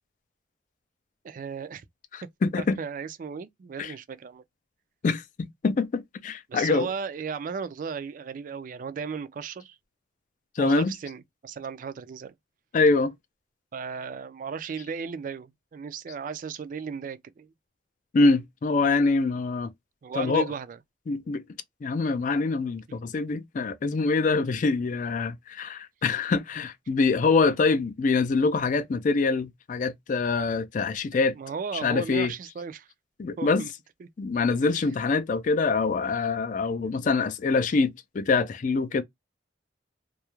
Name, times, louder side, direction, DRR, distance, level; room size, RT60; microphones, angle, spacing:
voice 1, 1.2-1.8 2.6-4.4 6.5-9.8 10.6-12.3 13.7-17.5 20.0-20.8 31.2-32.9 33.4-33.7 34.0-34.1, right 6 dB, 45° right, 0.3 m, -35 dB
voice 2, 2.1-2.8 3.8-4.0 5.0-5.2 5.6-6.9 10.6-10.9 12.7-13.1 18.1-19.7 20.1-20.5 21.1-21.4 21.8-31.3 31.8-32.3 33.2-33.6 34.2-39.0, left 4 dB, 45° left, 0.3 m, -24 dB
2.3 x 2.0 x 2.9 m
head